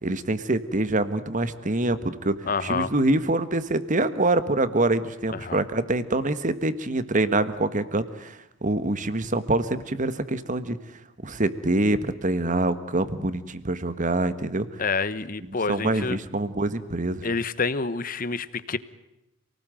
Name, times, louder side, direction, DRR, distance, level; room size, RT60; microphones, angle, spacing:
voice 1, 0.0-10.8 11.2-14.7 15.7-17.3, right 2 dB, 40° right, 13 dB, 1.5 m, -25 dB
voice 2, 2.5-2.9 5.3-5.6 14.8-16.2 17.2-18.8, left 4 dB, 45° left, 15 dB, 1.2 m, -28 dB
28.5 x 19.0 x 9.2 m, 0.87 s
head